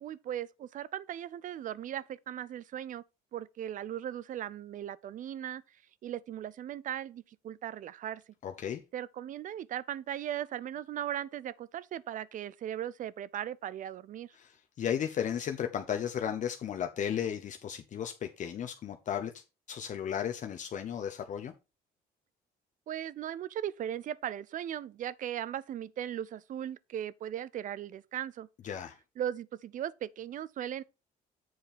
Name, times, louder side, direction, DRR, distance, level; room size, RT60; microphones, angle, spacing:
voice 1, 0.0-3.0 3.3-5.6 6.0-8.2 8.9-14.3 22.9-28.5 29.2-30.8, right 10 dB, 50° right, 0.5 m, -38 dB
voice 2, 8.4-8.8 14.4-19.4 19.7-21.5 28.6-28.9, left 9 dB, 50° left, 0.8 m, -34 dB
7.8 x 4.5 x 5.1 m
cardioid pair, 110°, 17 cm